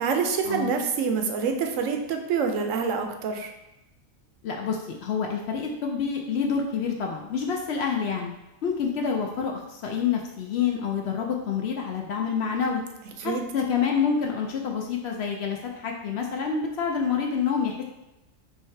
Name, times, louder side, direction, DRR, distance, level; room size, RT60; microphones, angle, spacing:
voice 1, 0.0-3.5 13.2-13.4, right 5 dB, 75° right, 4 dB, 0.9 m, -26 dB
voice 2, 4.4-8.3 8.6-12.8 13.2-17.8, left 6 dB, 65° left, 1 dB, 0.7 m, -27 dB
4.6 x 2.8 x 3.3 m, 0.97 s
omnidirectional pair, 1.4 m